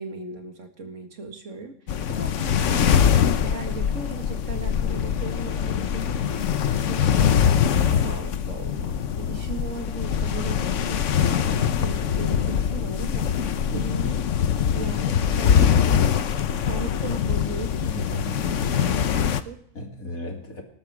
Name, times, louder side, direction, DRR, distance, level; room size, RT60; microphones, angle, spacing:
voice 1, 0.0-6.5 6.9-7.4 7.7-13.4 13.7-14.2 14.7-16.1 16.6-19.6, right 4 dB, 60° right, 5 dB, 2.2 m, -38 dB
sound 1, 1.9-19.4, left 8 dB, 65° left, 1.1 m, -23 dB
voice 2, 13.7-14.0 18.2-19.0 19.7-20.6, left 1 dB, 80° left, 1 dB, 3.2 m, -35 dB
20.0 x 12.0 x 4.8 m, 0.68 s
omnidirectional pair, 1.4 m